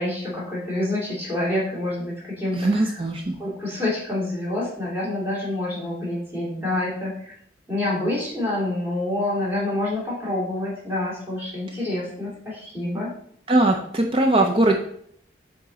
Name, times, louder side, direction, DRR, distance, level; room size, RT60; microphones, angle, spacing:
voice 1, 0.0-2.9 3.4-7.3 7.7-13.1, left 1 dB, 10° right, -6 dB, 2.4 m, -27 dB
voice 2, 2.5-3.4 13.5-14.7, right 2 dB, 30° right, 2 dB, 0.5 m, -20 dB
7.2 x 3.7 x 3.8 m, 0.66 s
head